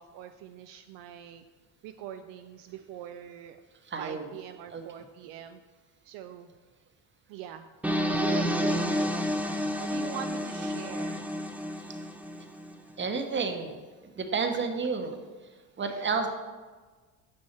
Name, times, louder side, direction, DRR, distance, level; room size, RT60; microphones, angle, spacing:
voice 1, 0.0-1.5 1.8-3.6 4.0-5.6 6.0-6.5 7.3-7.7 8.1-11.3 12.4-12.5 15.8-16.3, right 10 dB, 65° right, 8 dB, 0.5 m, -43 dB
voice 2, 3.9-4.3 4.7-4.8 8.8-9.0 13.0-13.8 14.2-15.2 15.8-16.3, right 4 dB, 25° right, 6 dB, 1.0 m, -30 dB
sound 1, 7.8-12.8, equal, 5° right, 0.5 m, -30 dB
6.5 x 5.4 x 4.3 m, 1.4 s
hypercardioid pair, 75°, 46 cm